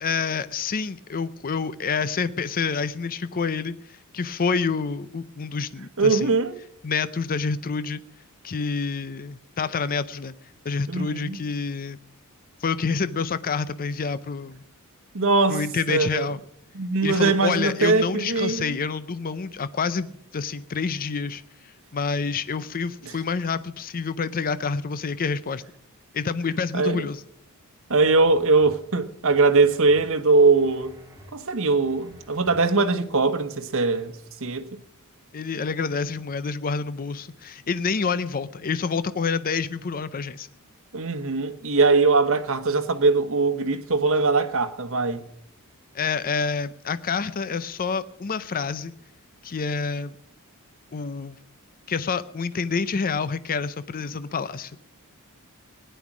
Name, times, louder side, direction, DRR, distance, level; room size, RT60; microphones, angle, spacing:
voice 1, 0.0-6.3 6.8-8.0 8.4-10.3 10.6-12.0 12.6-14.6 15.5-16.4 17.0-25.7 26.1-27.2 35.3-40.5 45.9-48.9 49.4-50.2 50.9-51.4 51.9-54.8, left 5 dB, 40° left, 0.5 m, -28 dB
voice 2, 6.0-6.6 10.9-11.4 15.1-16.3 16.7-18.8 26.7-27.1 27.9-30.9 31.3-34.8 40.9-45.3, right 3 dB, 65° right, 1.2 m, -21 dB
sound 1, 28.0-28.7 29.2-30.0 30.5-31.3 31.8-32.6 33.1-33.2, equal, 15° right, 2.9 m, -50 dB
17.0 x 10.5 x 6.1 m
head